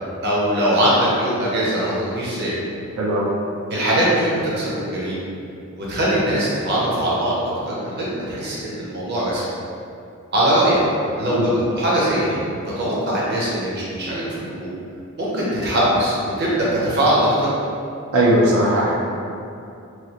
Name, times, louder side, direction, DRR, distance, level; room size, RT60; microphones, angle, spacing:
voice 1, 0.2-2.5 3.7-5.2 5.8-9.4 10.3-10.8 11.2-12.4 12.8-14.7 15.2-17.5, right 1 dB, 50° right, -7 dB, 0.7 m, -21 dB
voice 2, 3.0-3.3 11.3-11.5 18.1-18.9, right 1 dB, 85° right, -6 dB, 0.5 m, -18 dB
3.1 x 2.4 x 2.8 m, 2.6 s
head